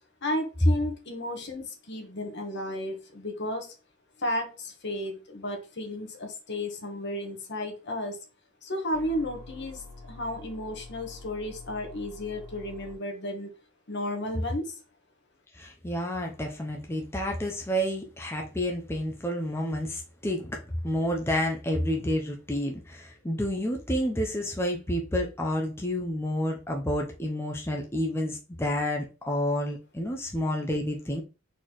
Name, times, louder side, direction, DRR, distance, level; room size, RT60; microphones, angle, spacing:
voice 1, 0.2-3.7 4.2-8.2 8.6-13.5 13.9-14.8, left 1 dB, 60° left, 1.3 m, -33 dB
sound 1, 8.9-12.9, left 3 dB, 45° right, 2.5 m, -46 dB
voice 2, 15.5-31.2, equal, 10° left, 0.6 m, -30 dB
4.2 x 4.2 x 3.0 m
head